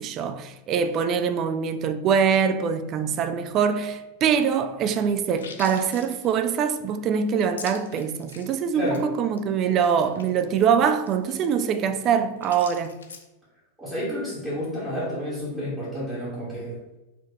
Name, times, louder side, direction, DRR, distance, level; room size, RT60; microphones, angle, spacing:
voice 1, 0.0-13.0, right 7 dB, 35° right, 0.3 m, -24 dB
sound 1, 4.9-8.6 8.9-9.0 9.3-9.4 9.7-13.2, left 5 dB, 65° left, 0.4 m, -44 dB
voice 2, 8.7-9.1 13.8-16.8, equal, 5° right, 1.5 m, -30 dB
4.0 x 2.8 x 3.0 m
figure-of-eight pair, 90°, 0 cm